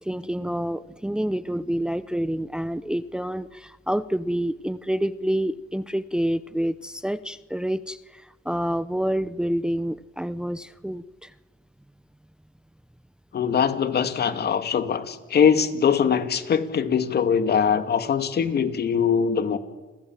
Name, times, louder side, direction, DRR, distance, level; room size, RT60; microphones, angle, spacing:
voice 1, 0.0-11.3, equal, 5° right, 14 dB, 0.9 m, -28 dB
voice 2, 13.3-19.6, left 7 dB, 55° left, 8 dB, 2.6 m, -22 dB
30.0 x 22.0 x 7.6 m, 1.3 s
cardioid pair, 90°, 20 cm